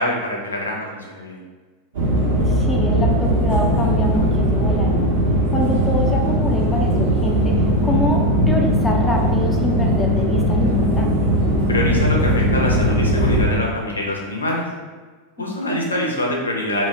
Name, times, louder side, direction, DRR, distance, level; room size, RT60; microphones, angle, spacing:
voice 1, 0.0-1.4 11.7-14.7 15.4-16.9, left 1 dB, 85° left, -1 dB, 0.5 m, -24 dB
sound 1, 1.9-13.5, equal, 70° right, 0.7 m, -19 dB
voice 2, 2.4-5.1 5.5-11.3 15.4-15.8, left 1 dB, 15° left, 0 dB, 0.5 m, -26 dB
2.1 x 2.1 x 3.4 m, 1.4 s
figure-of-eight pair, 90°, 0 cm